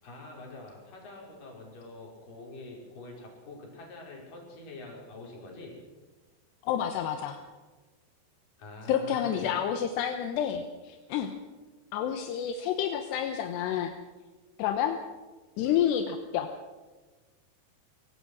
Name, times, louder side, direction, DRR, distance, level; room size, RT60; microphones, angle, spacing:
voice 1, 0.0-5.8 8.6-9.6, left 2 dB, 50° left, -1 dB, 6.7 m, -45 dB
voice 2, 6.6-7.4 8.9-11.3 11.9-13.9 14.6-15.0 15.6-16.5, left 9 dB, 80° left, 6 dB, 3.2 m, -29 dB
24.0 x 18.5 x 6.3 m, 1.3 s
omnidirectional pair, 4.9 m